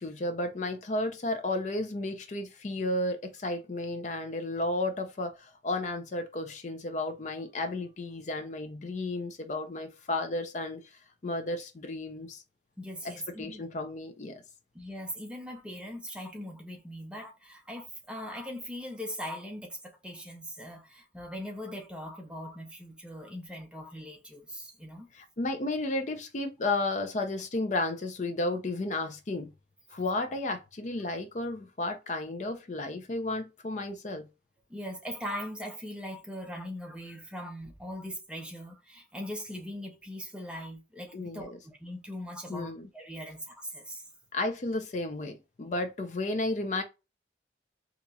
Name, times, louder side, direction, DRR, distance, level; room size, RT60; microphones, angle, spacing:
voice 1, 0.0-10.8 11.2-12.4 13.0-13.1 13.4-14.4 25.1-29.5 29.9-34.3 41.1-41.6 42.5-42.9 44.3-46.8, left 2 dB, 40° left, 0.5 m, -33 dB
voice 2, 12.8-13.6 14.7-25.1 34.7-44.0, equal, 5° right, 0.7 m, -40 dB
3.9 x 2.9 x 2.3 m
head